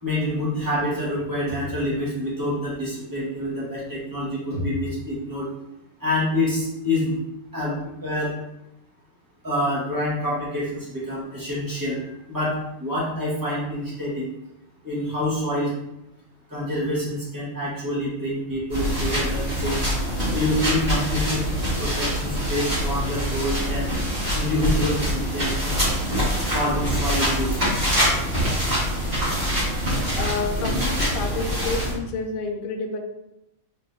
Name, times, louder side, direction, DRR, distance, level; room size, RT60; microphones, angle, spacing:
voice 1, 0.0-5.5 6.0-7.2 7.5-8.3 9.4-12.0 12.3-14.3 14.8-15.7 16.5-19.8 20.3-21.4 21.8-23.9 24.3-25.8 26.5-27.6 29.1-29.2, left 1 dB, 15° right, -8 dB, 1.5 m, -27 dB
sound 1, 18.7-31.9, equal, 45° right, 1.8 m, -24 dB
voice 2, 30.1-33.0, left 4 dB, 70° left, 4 dB, 0.5 m, -29 dB
3.9 x 3.6 x 2.7 m, 0.89 s
omnidirectional pair, 1.5 m